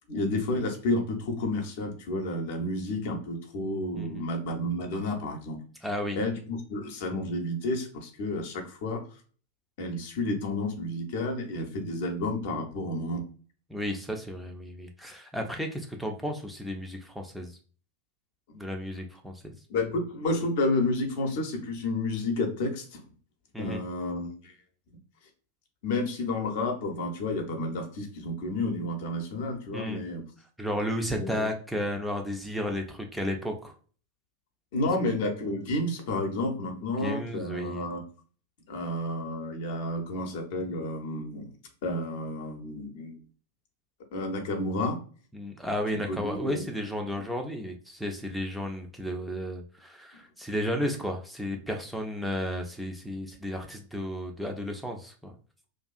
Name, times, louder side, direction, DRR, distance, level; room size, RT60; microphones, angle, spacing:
voice 1, 0.1-5.6 6.2-9.0 9.8-13.2 19.7-23.0 23.6-24.5 25.8-30.3 31.1-31.5 34.7-38.0 38.7-41.5 41.8-43.2 44.1-45.0 46.1-46.6, left 2 dB, 50° left, 4 dB, 0.7 m, -31 dB
voice 2, 3.9-4.3 5.8-6.2 13.7-17.6 18.5-19.6 23.5-23.8 29.7-30.0 30.6-33.7 37.0-37.9 45.3-55.3, equal, ahead, 2 dB, 0.4 m, -33 dB
2.5 x 2.3 x 2.4 m, 0.41 s
figure-of-eight pair, 90°, 0 cm